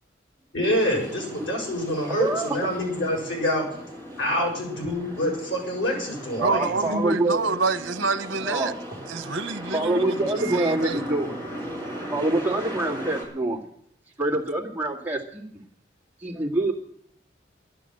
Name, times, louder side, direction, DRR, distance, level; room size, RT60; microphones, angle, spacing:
voice 1, 0.5-3.6 4.2-7.0, left 1 dB, 80° left, 7.0 m, -26 dB
sound 1, 0.6-13.2, equal, 10° left, 4.4 m, -38 dB
voice 2, 2.1-2.5 6.4-7.4 8.4-8.7 9.7-11.3 12.1-13.6 14.2-15.6 16.2-16.7, right 2 dB, 10° right, 2.1 m, -25 dB
voice 3, 6.4-8.7 9.1-10.2 10.5-11.0, right 4 dB, 90° right, 1.2 m, -27 dB
12.0 x 11.0 x 7.8 m
head